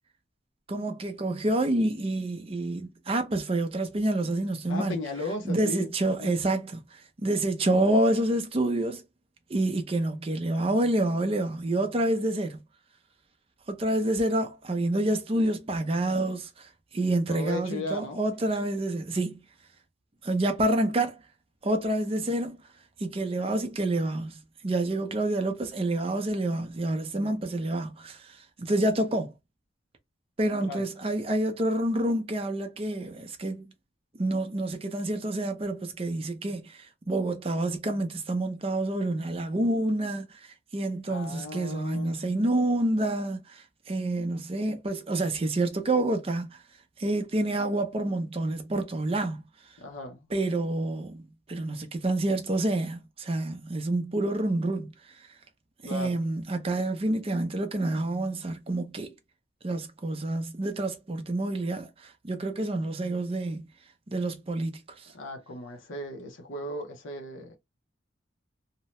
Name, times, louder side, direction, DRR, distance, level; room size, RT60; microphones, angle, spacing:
voice 1, 0.7-5.0 5.4-9.0 9.5-12.6 13.7-19.4 20.2-21.2 21.6-22.6 23.0-29.3 30.4-33.6 34.1-46.6 47.0-49.4 50.3-51.2 51.5-54.9 55.8-59.1 59.6-63.7 64.1-65.1, right 1 dB, 30° right, 0.5 m, -28 dB
voice 2, 4.7-6.4 17.3-18.2 30.7-30.8 41.1-42.1 49.8-50.3 55.8-56.2 65.1-67.6, left 2 dB, 75° left, 0.7 m, -36 dB
2.7 x 2.0 x 3.0 m
head